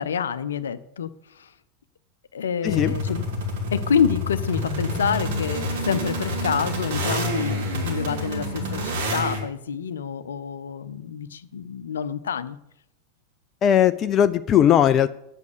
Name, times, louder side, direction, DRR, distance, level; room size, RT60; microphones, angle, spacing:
voice 1, 0.0-1.5 2.3-3.2 3.7-12.6, left 7 dB, 65° left, 13 dB, 0.7 m, -27 dB
voice 2, 2.6-3.0 13.6-15.1, left 10 dB, 30° left, 12 dB, 0.4 m, -18 dB
sound 1, 2.6-9.4, equal, 55° right, 3.1 m, -28 dB
10.5 x 8.3 x 6.7 m, 0.80 s
figure-of-eight pair, 90°, 0 cm